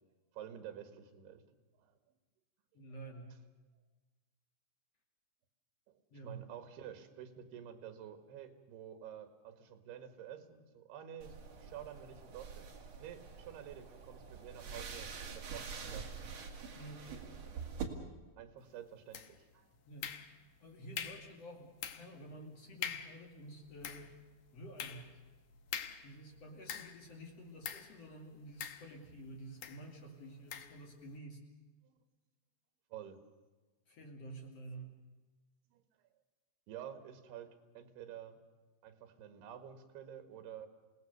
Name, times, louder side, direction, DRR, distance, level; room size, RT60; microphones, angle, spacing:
voice 1, 0.3-1.4 1.8-2.0 5.9-12.7 13.0-16.2 18.4-19.7 31.8-32.0 32.9-33.2 35.7-35.8 36.7-38.4 38.8-40.7, right 9 dB, 75° right, 7 dB, 3.6 m, -50 dB
voice 2, 2.7-3.3 6.1-6.4 16.7-17.0 19.8-20.1 20.6-24.1 24.5-25.1 26.0-31.4 33.9-34.9, right 1 dB, 45° left, 1 dB, 3.1 m, -50 dB
sound 1, 11.2-17.8, right 6 dB, 45° right, 2.8 m, -46 dB
sound 2, 19.1-19.5 20.0-20.6 21.0-21.3 21.8-22.2 22.5-22.6 22.8-23.2 23.6-27.1 27.6-28.0 28.6-29.2 29.6-29.8 30.5-30.8, left 9 dB, 65° left, 2.1 m, -44 dB
28.5 x 18.0 x 6.8 m, 1.3 s
omnidirectional pair, 4.7 m